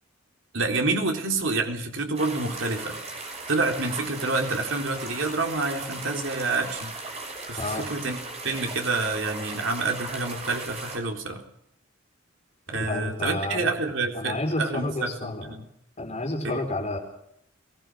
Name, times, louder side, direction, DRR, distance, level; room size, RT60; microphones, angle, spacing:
voice 1, 0.5-3.0 3.5-6.9 7.5-8.2 8.4-11.4 12.7-15.6 16.4-16.6, right 3 dB, 65° right, 3 dB, 3.9 m, -28 dB
sound 1, 2.1-11.0, right 2 dB, 30° right, 6.1 m, -37 dB
voice 2, 12.7-13.7 14.1-15.5 16.0-17.0, left 2 dB, 35° left, 2 dB, 4.9 m, -30 dB
23.0 x 20.0 x 6.4 m, 0.73 s
head